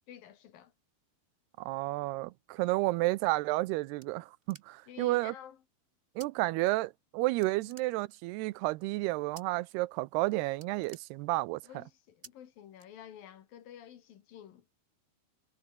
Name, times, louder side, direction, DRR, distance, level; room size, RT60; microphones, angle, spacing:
voice 1, 0.1-0.7 4.9-5.6 7.5-7.7 11.6-14.6, left 10 dB, 65° left, 3.4 m, -51 dB
voice 2, 1.6-5.3 6.2-11.6, right 20 dB, 90° right, 2.7 m, -31 dB
sound 1, 4.0-5.0 6.2-6.3 6.6-7.1 7.4-8.4 9.4-9.8 10.1-10.2 10.5-11.7 12.2-12.3 12.8-13.4, right 3 dB, 30° right, 1.0 m, -55 dB
omnidirectional pair, 4.5 m